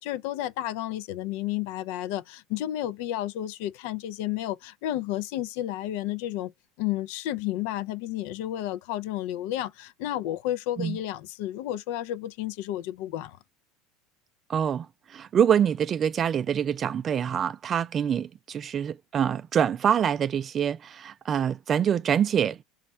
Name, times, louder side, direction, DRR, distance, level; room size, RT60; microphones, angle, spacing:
voice 1, 0.0-6.5 6.8-13.4, left 13 dB, 75° left, 0.4 m, -31 dB
voice 2, 14.5-22.6, right 8 dB, 35° right, 0.3 m, -25 dB
4.1 x 2.4 x 4.3 m
supercardioid pair, 100°, 0 cm